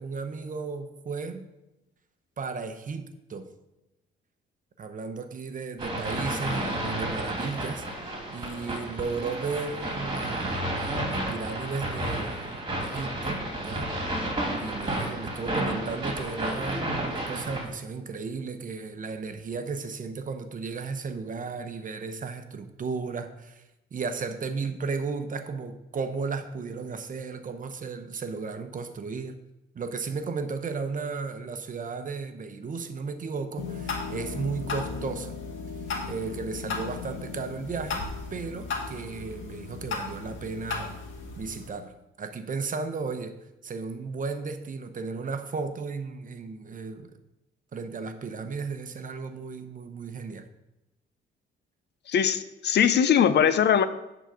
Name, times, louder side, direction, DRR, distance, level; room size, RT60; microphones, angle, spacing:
voice 1, 0.0-1.5 2.4-3.5 4.8-13.9 14.5-23.6 23.9-29.4 29.7-35.4 36.0-41.0 41.4-43.4 43.6-47.1 47.7-50.5, right 4 dB, 40° right, 8 dB, 0.9 m, -34 dB
sound 1, 5.8-17.6, right 1 dB, 25° right, 2.5 m, -31 dB
sound 2, 33.6-41.7, left 4 dB, 75° left, 1.7 m, -35 dB
voice 2, 52.1-53.9, left 8 dB, 60° left, 12 dB, 0.6 m, -21 dB
10.0 x 4.0 x 6.2 m, 0.96 s
cardioid pair, 90°, 20 cm